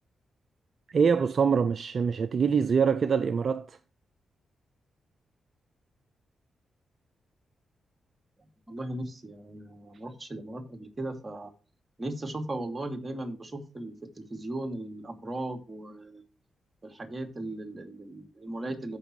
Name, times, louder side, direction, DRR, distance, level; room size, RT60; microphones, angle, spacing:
voice 1, 0.9-3.8, right 6 dB, 60° right, 0.5 m, -24 dB
voice 2, 8.7-11.5 12.0-16.2 16.8-19.0, right 1 dB, 30° right, 2.8 m, -37 dB
15.5 x 6.0 x 3.2 m
hypercardioid pair, 45°, 0 cm